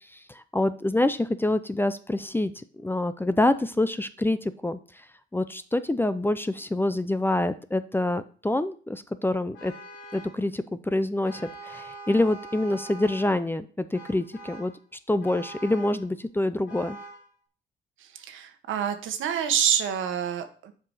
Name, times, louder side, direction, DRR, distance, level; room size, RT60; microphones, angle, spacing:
voice 1, 0.1-4.8 5.3-9.7 10.1-14.7 15.1-17.0, left 1 dB, 10° left, 12 dB, 0.5 m, -26 dB
Vehicle horn car horn honking, 9.5-10.4 11.2-13.4 13.9-14.8 15.2-16.1 16.7-17.3, right 2 dB, 70° left, 3.2 m, -43 dB
voice 2, 18.0-20.7, right 8 dB, 80° right, 7 dB, 1.3 m, -27 dB
7.3 x 4.9 x 5.4 m, 0.42 s
cardioid pair, 90°, 20 cm